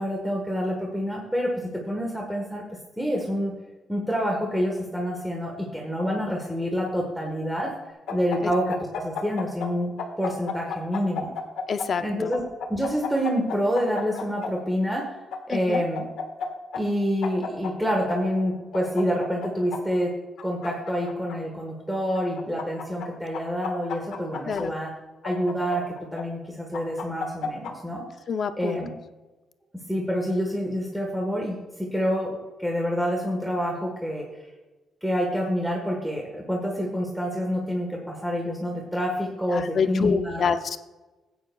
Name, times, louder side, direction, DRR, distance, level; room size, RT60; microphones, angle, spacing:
voice 1, 0.0-2.6 3.0-3.5 3.9-7.7 8.1-9.9 10.2-11.3 12.0-12.4 12.7-15.1 15.5-16.0 16.7-20.1 20.4-24.9 25.2-25.8 26.1-28.0 28.6-28.9 29.9-34.2 35.0-40.5, equal, ahead, -1 dB, 1.4 m, -27 dB
sound 1, 8.1-9.7 10.0-11.9 12.3-14.5 15.3-16.5 16.7-16.8 17.2-18.2 18.7-19.8 20.4-21.4 22.1-23.1 23.3-24.6 25.2-26.2 26.7-27.7, left 6 dB, 85° left, 1.4 m, -32 dB
voice 2, 11.7-12.3 15.5-15.8 24.4-24.7 28.3-28.8 39.5-40.8, left 6 dB, 40° left, 10 dB, 0.5 m, -27 dB
15.0 x 9.4 x 2.3 m, 1.2 s
cardioid pair, 160°, 0 cm